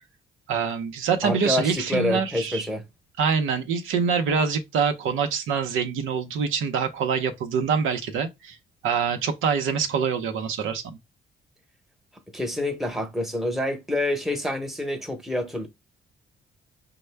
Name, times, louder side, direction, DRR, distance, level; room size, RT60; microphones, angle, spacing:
voice 1, 0.5-2.7 3.2-8.6 8.8-11.0, right 6 dB, 85° right, 0.8 m, -25 dB
voice 2, 1.2-2.8 12.3-15.7, left 1 dB, ahead, 0.9 m, -27 dB
5.3 x 2.2 x 3.3 m
cardioid pair, 90°, 20 cm